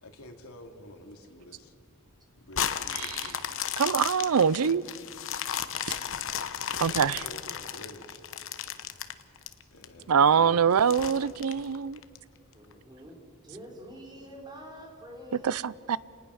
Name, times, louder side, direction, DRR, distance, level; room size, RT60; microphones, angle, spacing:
voice 1, 0.0-1.7 2.4-3.4 6.6-8.2 9.7-11.0, left 1 dB, 80° left, 2.5 m, -48 dB
sound 1, 2.5-9.8 10.3-10.4 10.9-12.2 12.7-12.8, left 9 dB, 65° left, 1.0 m, -34 dB
voice 2, 3.8-4.8 6.8-7.2 10.1-12.0 15.4-16.0, right 7 dB, 80° right, 0.5 m, -24 dB
voice 3, 12.5-13.2 13.4-15.6, equal, 20° right, 4.3 m, -46 dB
30.0 x 19.0 x 6.4 m
head